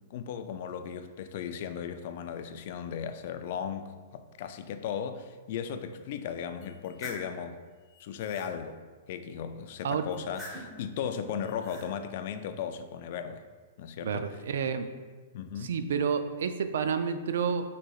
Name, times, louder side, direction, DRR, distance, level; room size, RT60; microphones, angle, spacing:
voice 1, 0.0-7.6 8.0-8.8 9.1-13.4 13.8-14.4 15.3-15.8, left 7 dB, 45° left, 9 dB, 0.3 m, -36 dB
sound 1, 6.6-7.3 7.9-8.5 10.1-10.8 11.4-11.9, equal, ahead, 0.9 m, -45 dB
voice 2, 14.0-14.9 15.6-17.7, right 6 dB, 70° right, 9 dB, 0.3 m, -29 dB
6.3 x 3.1 x 2.3 m, 1.4 s
hypercardioid pair, 165°, 0 cm